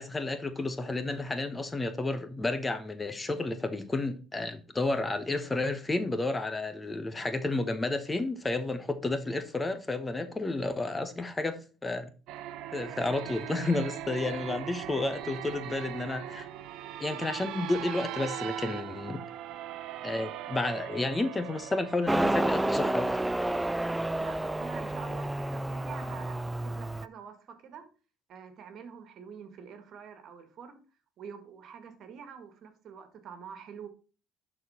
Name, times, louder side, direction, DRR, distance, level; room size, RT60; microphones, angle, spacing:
voice 1, 0.0-12.1 12.7-16.5 17.0-19.2 20.0-23.3, left 2 dB, 20° left, 1.0 m, -31 dB
sound 1, 12.3-22.7, right 11 dB, 75° right, 0.8 m, -40 dB
Motorcycle, 22.1-27.1, right 1 dB, 10° right, 0.4 m, -30 dB
voice 2, 24.2-27.9 28.3-30.9 31.2-33.9, right 7 dB, 55° right, 1.9 m, -46 dB
11.5 x 4.5 x 4.2 m
cardioid pair, 100°, 0 cm